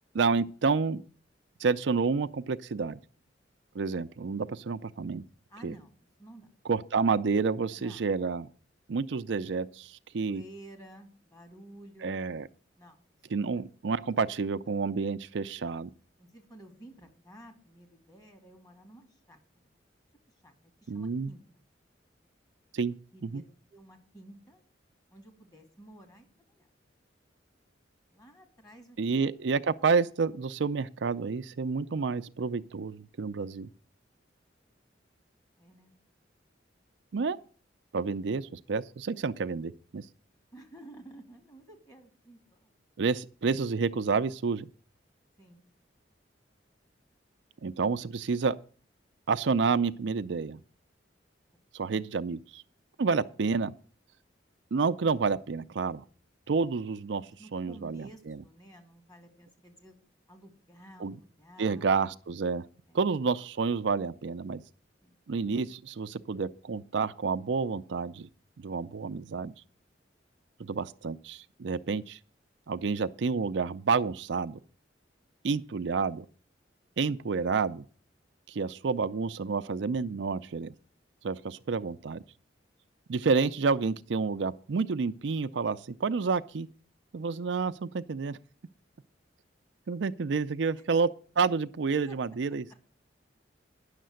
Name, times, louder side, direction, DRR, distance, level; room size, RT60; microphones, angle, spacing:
voice 1, 0.1-1.0 1.6-3.0 3.7-5.2 5.6-5.7 6.7-8.5 8.9-10.4 12.0-12.5 13.3-15.9 20.9-21.3 22.7-22.9 23.2-23.4 29.0-33.7 37.1-37.4 37.9-40.0 43.0-44.7 47.6-48.5 49.3-50.6 51.7-52.6 53.0-53.7 54.7-56.0 56.5-57.3 57.5-58.4 61.0-61.1 61.6-62.6 62.9-64.6 65.3-68.3 68.6-69.5 70.6-72.2 72.7-74.6 75.4-76.2 77.0-77.8 78.5-80.7 81.2-82.2 83.1-86.7 87.1-88.4 89.9-91.1 91.4-92.7, right 5 dB, 70° right, 0.5 m, -29 dB
voice 2, 5.5-6.5 7.8-8.0 10.2-12.2 12.8-13.0 13.4-13.6 14.4-14.6 16.2-19.7 20.4-21.6 23.1-23.4 23.7-24.6 25.1-26.7 28.1-29.2 35.6-35.9 40.5-42.7 45.4-45.6 57.1-60.0 60.3-61.9 62.9-63.0 65.0-65.2 90.8-90.9 92.1-92.2, right 1 dB, 20° left, 2.4 m, -52 dB
10.0 x 6.6 x 7.7 m
head